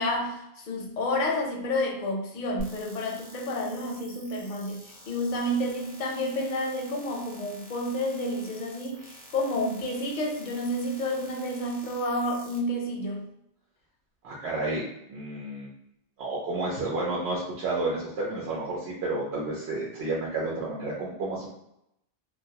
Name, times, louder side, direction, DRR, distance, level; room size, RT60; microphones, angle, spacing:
voice 1, 0.0-13.3, left 1 dB, 60° left, 1 dB, 0.6 m, -30 dB
sound 1, 2.6-12.6, equal, 15° right, 0.3 m, -48 dB
voice 2, 14.2-14.8 15.1-15.7 16.2-21.5, right 2 dB, 80° right, -5 dB, 0.9 m, -31 dB
2.3 x 2.1 x 2.7 m, 0.80 s
omnidirectional pair, 1.1 m